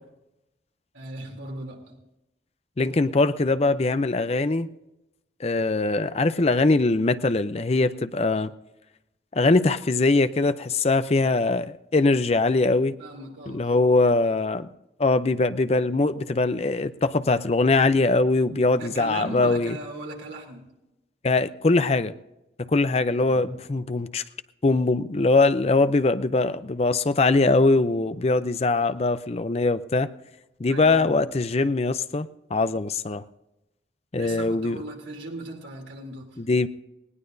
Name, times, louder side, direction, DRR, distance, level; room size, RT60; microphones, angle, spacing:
voice 1, 0.9-1.9 13.0-13.7 18.8-20.6 23.1-23.4 28.8-28.9 30.7-31.2 34.2-36.3, right 2 dB, 85° right, 1 dB, 3.1 m, -38 dB
voice 2, 2.8-4.7 5.4-8.5 9.3-13.0 13.5-14.7 15.0-19.8 21.2-22.1 22.6-24.2 24.6-30.1 30.6-33.2 34.1-34.8 36.4-36.7, left 3 dB, 35° left, 12 dB, 0.5 m, -22 dB
19.5 x 18.0 x 2.7 m, 0.94 s
head